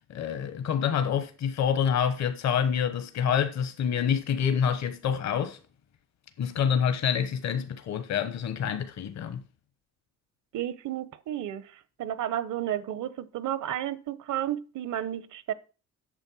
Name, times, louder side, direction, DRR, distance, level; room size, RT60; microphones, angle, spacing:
voice 1, 0.1-5.6 6.4-9.4, left 8 dB, 60° left, 1.2 m, -27 dB
voice 2, 10.5-15.5, right 11 dB, 75° right, 1.0 m, -32 dB
8.9 x 6.8 x 6.3 m
cardioid pair, 90°, 30 cm